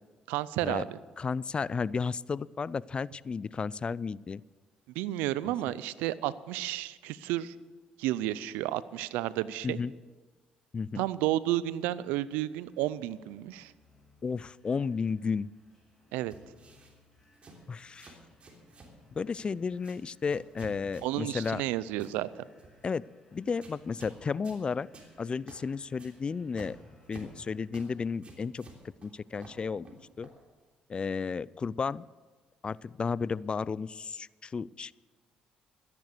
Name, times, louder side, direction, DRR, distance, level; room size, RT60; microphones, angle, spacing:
voice 1, 0.3-1.0 5.0-7.6 8.0-9.8 11.0-13.7 16.1-16.3 21.0-22.4, right 15 dB, 90° right, 18 dB, 0.4 m, -32 dB
voice 2, 1.2-4.4 5.4-5.7 9.6-9.9 10.7-11.0 14.2-15.5 17.7-18.2 19.2-21.6 22.8-23.0 23.3-24.9 25.2-26.8 27.1-28.7 29.0-29.9 30.2-30.3 30.9-32.0 32.6-34.9, left 5 dB, 35° left, 22 dB, 0.3 m, -33 dB
sound 1, 12.3-27.7, left 2 dB, 15° left, 5.4 m, -64 dB
sound 2, 16.3-16.9 17.3-17.6 17.9-19.0 19.2-19.5 19.8-20.0 20.3-21.6 22.0-22.2 22.6-22.9 23.6-24.2 24.4-24.6 24.9-25.1 25.5-25.6 26.0-26.1 26.6-27.4 27.7-27.9 28.2-29.1 29.4-30.4, right 3 dB, 45° right, 3.3 m, -51 dB
13.5 x 10.5 x 6.6 m, 1.4 s
supercardioid pair, 70°, 3 cm